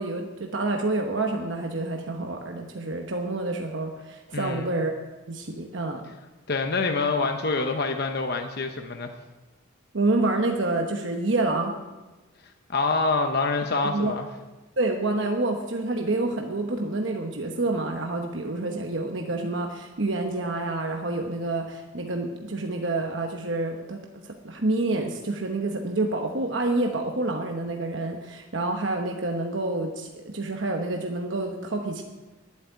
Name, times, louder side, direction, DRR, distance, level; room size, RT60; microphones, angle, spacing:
voice 1, 0.0-4.9 5.3-6.0 9.9-11.7 13.8-14.1 14.8-24.0 24.4-32.0, right 2 dB, 60° right, 2 dB, 1.1 m, -28 dB
voice 2, 4.3-4.7 6.5-9.1 12.7-14.3, left 3 dB, 50° left, 5 dB, 0.9 m, -26 dB
10.5 x 8.3 x 9.5 m, 1.1 s
head